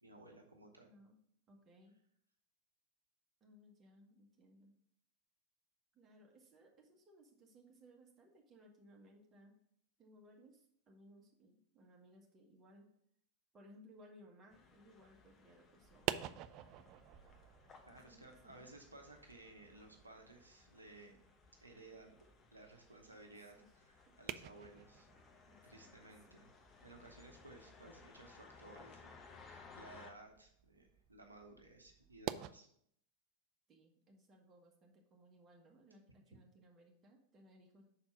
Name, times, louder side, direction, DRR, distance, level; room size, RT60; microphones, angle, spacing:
voice 1, 0.0-0.9 17.9-21.2 21.6-25.1 25.6-26.5 26.8-29.1 29.4-32.7, right 2 dB, 80° right, 2 dB, 0.9 m, -58 dB
voice 2, 0.8-1.2 1.5-2.0 3.4-4.7 5.9-9.6 10.0-12.9 13.5-16.5 17.9-18.7 23.5-23.7 24.1-24.2 25.5-26.4 33.7-37.8, equal, 25° right, 0 dB, 1.5 m, -63 dB
sound 1, 14.5-30.1, left 4 dB, 25° left, 1.0 m, -62 dB
sound 2, 15.8-32.5, right 12 dB, 40° right, 0.3 m, -50 dB
5.9 x 4.3 x 5.4 m, 0.67 s
figure-of-eight pair, 90°, 0 cm